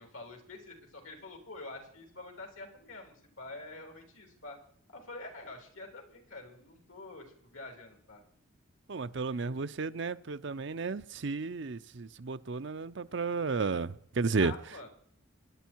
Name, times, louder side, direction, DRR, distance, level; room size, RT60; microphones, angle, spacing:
voice 1, 0.0-4.6 4.9-8.2 9.3-9.6 14.4-14.9, left 2 dB, 80° left, 3.9 m, -47 dB
voice 2, 8.9-14.5, right 4 dB, 60° right, 0.6 m, -33 dB
23.5 x 10.5 x 4.6 m
head